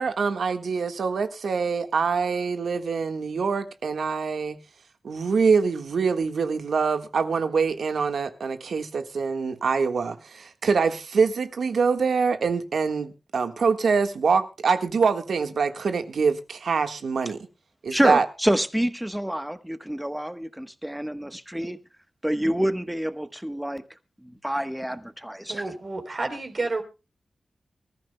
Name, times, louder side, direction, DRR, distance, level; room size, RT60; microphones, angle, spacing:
voice 1, 0.0-4.6 5.0-17.4 17.8-18.2, right 5 dB, 90° right, 1.5 m, -24 dB
voice 2, 17.9-21.8 22.2-23.8 24.2-25.7, equal, 5° right, 1.1 m, -27 dB
voice 3, 25.5-26.8, right 3 dB, 45° right, 3.6 m, -30 dB
25.0 x 14.0 x 2.2 m
wide cardioid pair, 110°, 0 cm